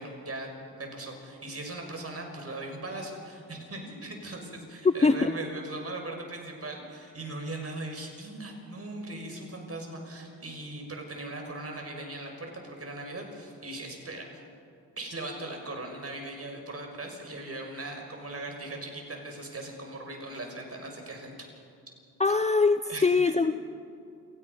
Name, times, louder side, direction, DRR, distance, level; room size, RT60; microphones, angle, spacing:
voice 1, 0.0-14.3 15.0-21.5 22.9-23.5, right 2 dB, 35° right, 2 dB, 6.3 m, -39 dB
voice 2, 4.8-5.3 22.2-23.5, left 4 dB, 15° left, 11 dB, 0.7 m, -23 dB
28.5 x 18.0 x 5.6 m, 2.5 s
hypercardioid pair, 50°, 41 cm